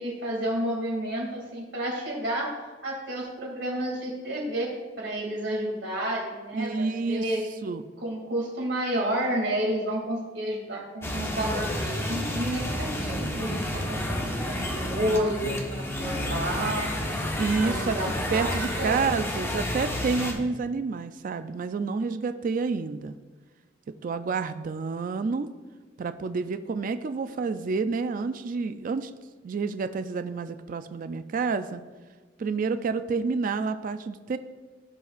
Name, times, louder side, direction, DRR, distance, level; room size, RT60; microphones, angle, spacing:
voice 1, 0.0-2.5 2.8-4.7 5.0-7.4 8.0-16.9 17.6-18.5 18.8-19.1, right 1 dB, 70° right, -1 dB, 2.5 m, -30 dB
voice 2, 6.5-7.2 7.6-7.9 17.4-18.0 18.3-23.1 24.0-25.5 26.0-29.1 29.4-31.8 32.4-34.4, right 4 dB, 45° right, 11 dB, 0.3 m, -29 dB
sound 1, 11.0-20.3, left 1 dB, 15° left, 1.1 m, -30 dB
16.0 x 5.5 x 2.5 m, 1.3 s
head